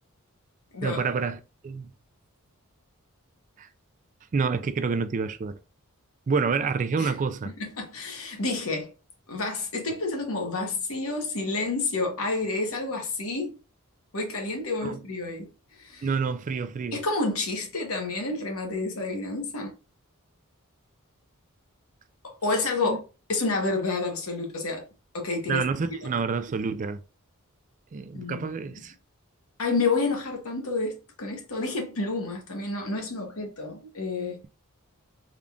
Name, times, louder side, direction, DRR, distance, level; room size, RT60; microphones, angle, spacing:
voice 1, 0.8-1.9 3.6-3.7 4.3-5.6 6.3-7.5 14.8-15.0 16.0-17.0 22.8-23.0 25.5-27.0 27.9-28.9, right 5 dB, 35° right, 0.3 m, -28 dB
voice 2, 7.4-8.9 9.3-13.6 14.1-15.5 15.7-16.1 16.9-19.7 22.2-23.0 23.3-24.8 25.1-25.6 26.0-26.1 28.1-28.7 29.6-34.4, left 3 dB, 75° left, 1.2 m, -29 dB
3.7 x 2.4 x 3.4 m
head